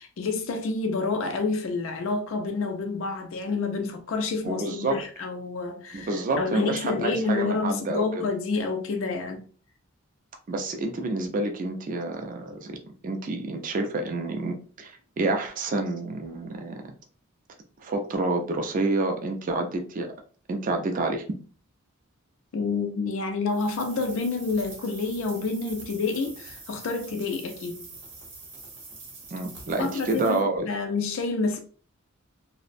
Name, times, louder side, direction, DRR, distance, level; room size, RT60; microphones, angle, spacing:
voice 1, 0.0-9.5 22.5-27.9 29.8-31.6, left 4 dB, 65° left, 0.4 m, -28 dB
voice 2, 4.4-5.0 5.9-8.3 10.5-12.7 13.0-16.8 17.8-20.1 20.5-21.2 29.3-30.6, right 2 dB, 40° right, 0.4 m, -28 dB
sound 1, 23.5-30.4, right 3 dB, 60° right, 0.8 m, -45 dB
2.5 x 2.0 x 2.5 m
head